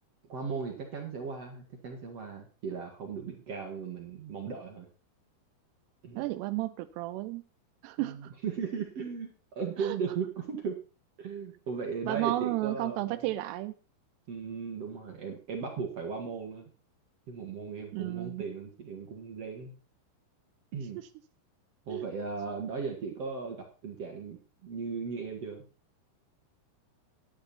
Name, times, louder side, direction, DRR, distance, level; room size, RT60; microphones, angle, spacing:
voice 1, 0.3-4.9 6.0-6.3 8.0-10.8 11.2-13.2 14.3-16.7 17.3-19.7 20.7-21.0 21.9-25.7, right 5 dB, 50° right, 1.9 m, -37 dB
voice 2, 6.2-7.4 7.8-8.3 9.8-10.0 12.1-13.7 17.9-18.5 21.9-22.1, right 16 dB, 85° right, 2.4 m, -33 dB
12.0 x 10.5 x 4.3 m
omnidirectional pair, 5.6 m